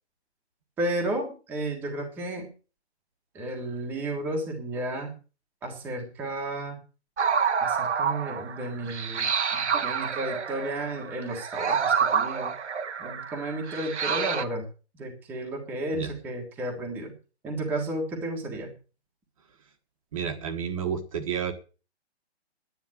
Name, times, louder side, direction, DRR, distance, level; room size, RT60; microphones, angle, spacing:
voice 1, 0.8-2.5 3.3-5.1 5.6-6.8 7.6-12.5 13.0-14.6 14.9-17.1 17.4-18.7, right 1 dB, 5° right, 1 dB, 1.5 m, -33 dB
sound 1, 7.2-14.4, right 6 dB, 80° right, 1.6 m, -28 dB
voice 2, 20.1-21.5, right 7 dB, 30° right, 6 dB, 1.5 m, -30 dB
10.0 x 10.0 x 7.8 m, 0.35 s
hypercardioid pair, 175°, 34 cm